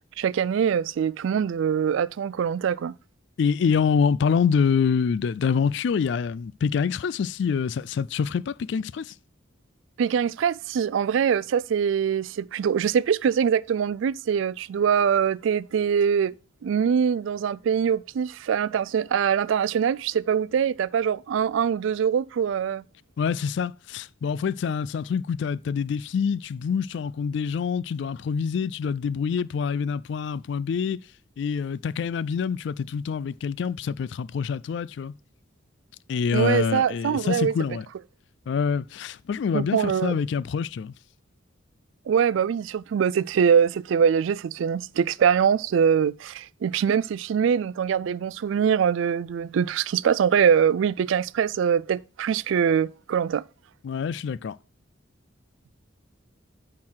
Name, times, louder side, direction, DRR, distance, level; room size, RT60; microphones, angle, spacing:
voice 1, 0.2-2.9 10.0-16.3 16.6-22.8 36.3-37.5 39.5-40.2 42.1-53.4, right 7 dB, 70° right, 0.3 m, -23 dB
voice 2, 3.4-9.1 23.2-31.0 31.4-35.1 36.1-37.9 38.5-40.9 53.8-54.6, left 6 dB, 60° left, 0.3 m, -26 dB
8.7 x 3.8 x 6.2 m
head